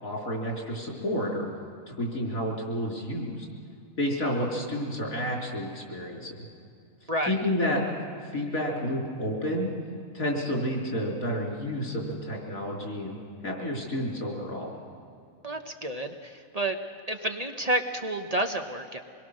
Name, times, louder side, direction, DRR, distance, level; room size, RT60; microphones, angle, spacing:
voice 1, 0.0-1.5 1.9-3.5 4.0-6.4 7.3-7.8 8.3-9.7 10.1-13.2 13.4-14.7, equal, 90° left, -1 dB, 4.5 m, -30 dB
voice 2, 15.4-16.8 17.1-19.0, right 1 dB, 30° right, 5 dB, 1.1 m, -30 dB
25.0 x 21.5 x 6.6 m, 2.5 s
omnidirectional pair, 1.4 m